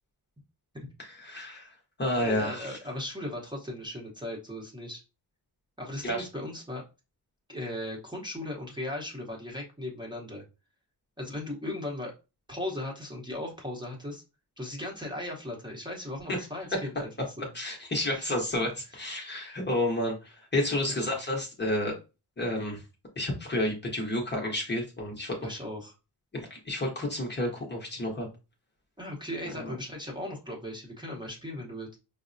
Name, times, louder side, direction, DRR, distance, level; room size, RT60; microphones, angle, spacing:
voice 1, 1.0-1.7 2.0-2.8 6.0-6.2 16.3-16.4 17.5-21.9 22.4-22.8 23.2-25.4 26.3-28.3 29.4-29.8, left 1 dB, 25° left, 0 dB, 0.8 m, -30 dB
voice 2, 2.2-5.0 5.8-6.8 7.5-10.4 11.2-12.1 12.5-14.2 14.6-17.1 17.4-17.5 18.1-18.3 21.0-21.1 25.4-25.9 29.0-32.0, left 1 dB, 10° right, -2 dB, 0.8 m, -37 dB
5.2 x 2.0 x 2.5 m, 0.29 s
wide cardioid pair, 150°, 40 cm